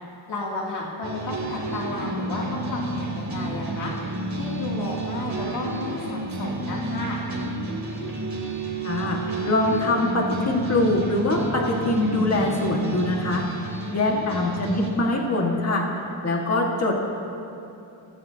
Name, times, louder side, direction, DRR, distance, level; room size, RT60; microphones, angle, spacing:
voice 1, 0.3-3.9 4.3-7.2 13.8-14.5, left 2 dB, 80° left, -5 dB, 2.9 m, -33 dB
sound 1, 1.0-14.9, right 2 dB, 40° right, 2.8 m, -31 dB
voice 2, 8.8-13.4 13.9-15.9 16.2-16.9, left 2 dB, 35° left, -1 dB, 1.8 m, -23 dB
27.0 x 17.5 x 2.9 m, 2.7 s
wide cardioid pair, 170°, 41 cm